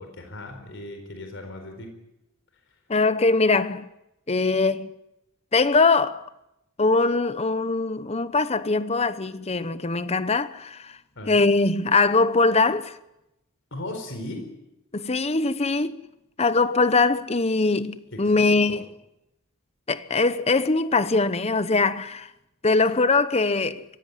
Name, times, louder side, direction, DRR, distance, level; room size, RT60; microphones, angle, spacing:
voice 1, 0.0-1.9 11.2-11.5 13.7-14.5 18.1-18.8, left 1 dB, 60° left, 4.3 m, -37 dB
voice 2, 2.9-3.9 4.3-4.9 5.5-6.3 6.8-11.0 11.3-13.0 14.9-16.0 16.4-18.8 19.9-22.3 22.6-23.8, left 3 dB, 30° left, 0.9 m, -22 dB
23.5 x 16.0 x 9.8 m
head